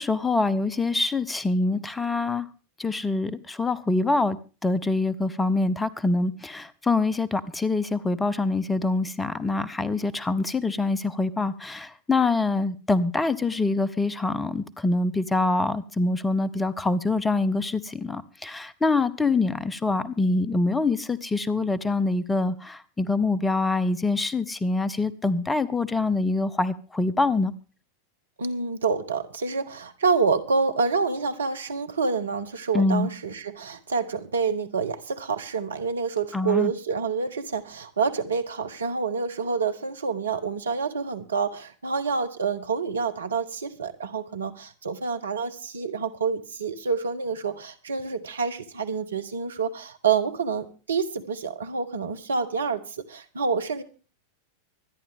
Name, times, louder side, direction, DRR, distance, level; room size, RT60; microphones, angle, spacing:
voice 1, 0.0-2.5 2.8-4.4 4.6-27.5 32.7-33.1 36.3-36.7, left 3 dB, 10° left, 0.7 m, -25 dB
voice 2, 28.4-53.8, right 5 dB, 70° right, 1.3 m, -27 dB
24.5 x 10.5 x 3.6 m
figure-of-eight pair, 90°, 0 cm